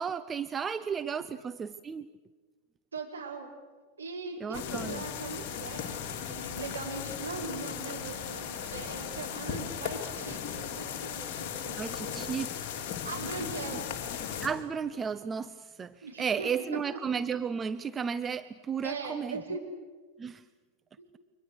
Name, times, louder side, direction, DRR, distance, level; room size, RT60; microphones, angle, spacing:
voice 1, 0.0-2.1 4.4-5.0 11.8-12.5 14.4-19.4 20.2-20.4, right 6 dB, 20° right, 13 dB, 0.7 m, -34 dB
voice 2, 2.9-3.5 4.0-6.0 6.2-12.2 13.0-14.0 16.0-16.5 18.8-19.6, right 4 dB, 75° right, 0 dB, 4.7 m, -40 dB
sound 1, 4.5-14.5, left 8 dB, 45° left, 3.4 m, -37 dB
29.0 x 24.5 x 6.7 m, 1.3 s
figure-of-eight pair, 90°, 0 cm